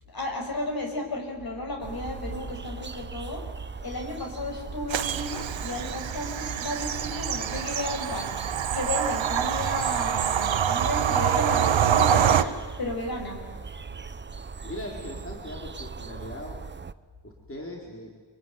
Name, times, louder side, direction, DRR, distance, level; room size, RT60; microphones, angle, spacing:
voice 1, 0.1-3.5 3.8-8.3 8.7-13.4, left 2 dB, 50° left, 3 dB, 6.3 m, -33 dB
sound 1, 1.8-16.9, right 5 dB, 25° right, 0.7 m, -39 dB
Bird vocalization bird call bird song / Train, 4.9-12.4, right 9 dB, 85° right, 1.3 m, -25 dB
voice 2, 14.6-16.6 17.2-18.1, left 1 dB, 30° left, -1 dB, 4.7 m, -39 dB
25.5 x 24.0 x 9.7 m, 1.5 s
wide cardioid pair, 105°, 45 cm